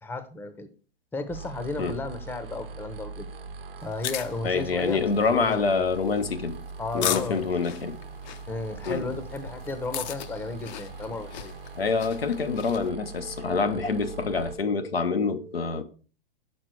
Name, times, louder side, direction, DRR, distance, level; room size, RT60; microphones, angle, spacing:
voice 1, 0.0-0.7 1.1-3.3 3.8-5.6 6.8-7.5 8.5-11.5, left 3 dB, 5° left, 0.8 m, -34 dB
sound 1, 1.3-14.5, right 4 dB, 75° right, 1.1 m, -41 dB
sound 2, 3.8-12.9, left 11 dB, 50° left, 0.7 m, -38 dB
voice 2, 4.4-6.6 6.9-8.0 8.9-9.1 11.8-15.8, left 4 dB, 90° left, 0.9 m, -26 dB
6.5 x 5.9 x 4.5 m
hypercardioid pair, 110°, 29 cm